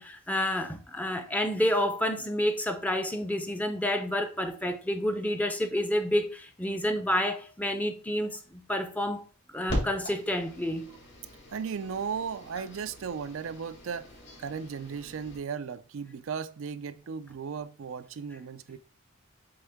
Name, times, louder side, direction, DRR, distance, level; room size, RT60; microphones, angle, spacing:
voice 1, 0.0-9.2 9.5-10.9, left 1 dB, 5° left, 0.6 m, -29 dB
sound 1, 9.7-15.4, equal, 60° left, 2.9 m, -39 dB
voice 2, 11.5-14.1 14.4-18.8, right 6 dB, 70° right, 0.4 m, -36 dB
7.9 x 3.5 x 3.5 m
head